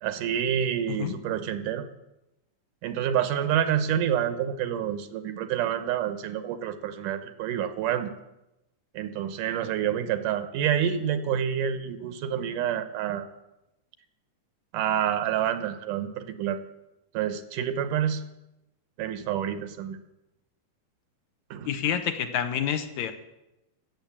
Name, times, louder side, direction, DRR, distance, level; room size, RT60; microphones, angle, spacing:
voice 1, 0.0-1.9 2.8-8.1 8.9-13.3 14.7-16.6 17.1-18.2 19.0-20.0 21.5-21.7, right 9 dB, 85° right, 9 dB, 2.6 m, -28 dB
voice 2, 21.6-23.1, left 9 dB, 70° left, 7 dB, 2.1 m, -28 dB
16.0 x 7.5 x 7.3 m, 0.93 s
omnidirectional pair, 3.6 m